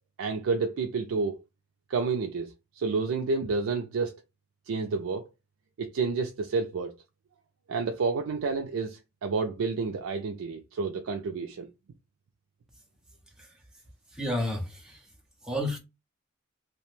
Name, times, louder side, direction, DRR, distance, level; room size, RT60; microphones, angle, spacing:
voice 1, 0.2-1.4 1.9-4.2 4.7-5.2 5.8-7.0 7.7-11.7, right 4 dB, 75° right, 0.4 m, -30 dB
voice 2, 14.1-15.0 15.4-15.8, left 1 dB, 5° right, 0.5 m, -31 dB
2.7 x 2.1 x 3.0 m
head